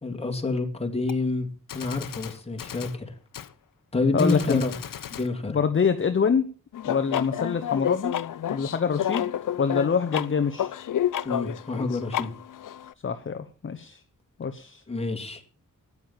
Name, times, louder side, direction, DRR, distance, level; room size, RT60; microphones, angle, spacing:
voice 1, 0.0-1.5 1.7-3.1 3.9-4.7 5.1-5.6 11.2-12.3 14.9-15.4, left 3 dB, 20° left, 2 dB, 2.4 m, -28 dB
Gunshot gunfire, 1.1-1.2 1.7-3.0 3.3-3.5 4.2-5.3, left 9 dB, 90° left, 1.0 m, -39 dB
voice 2, 4.1-4.6 5.5-6.4 6.8-8.1 8.5-10.7 13.0-14.0 14.4-14.8, left 6 dB, 40° left, 8 dB, 0.9 m, -25 dB
sound 1, 6.7-12.9, left 11 dB, 70° left, 0.6 m, -30 dB
13.5 x 9.6 x 7.2 m, 0.41 s
wide cardioid pair, 145°, 32 cm